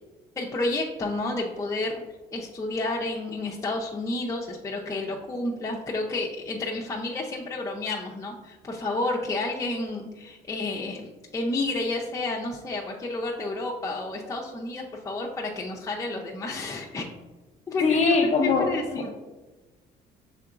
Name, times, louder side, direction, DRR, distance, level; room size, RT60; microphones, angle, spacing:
voice 1, 0.4-2.0 2.3-17.1 17.7-19.1, left 2 dB, 20° left, -2 dB, 0.5 m, -30 dB
voice 2, 17.8-18.7 18.9-19.1, left 4 dB, 40° left, 3 dB, 0.8 m, -22 dB
5.7 x 3.7 x 2.4 m, 1.2 s
cardioid pair, 110°, 17 cm